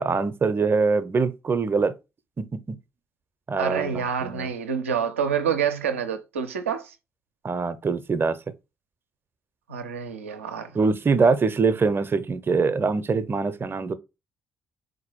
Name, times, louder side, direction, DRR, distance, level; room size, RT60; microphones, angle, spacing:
voice 1, 0.0-1.9 2.4-2.8 3.5-4.5 7.4-8.4 10.7-13.9, right 4 dB, 30° right, 0.5 m, -23 dB
voice 2, 3.6-6.9 9.7-10.8, right 7 dB, 85° right, 0.4 m, -27 dB
3.9 x 2.6 x 4.4 m
figure-of-eight pair, 40°, 7 cm